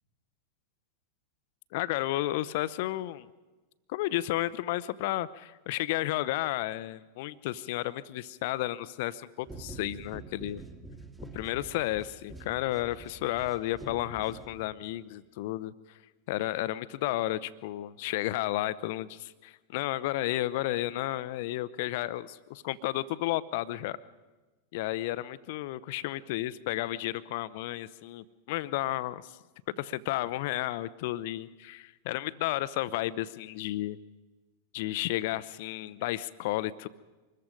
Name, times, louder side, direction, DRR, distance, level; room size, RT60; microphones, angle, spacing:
voice 1, 1.7-3.3 3.9-10.6 11.3-15.7 16.3-24.0 24.7-29.3 29.7-34.0 34.7-36.9, left 15 dB, 50° left, 18 dB, 0.8 m, -32 dB
sound 1, 9.4-15.0, right 3 dB, 5° right, 1.7 m, -47 dB
25.5 x 21.0 x 5.2 m, 1.2 s
figure-of-eight pair, 90°, 0 cm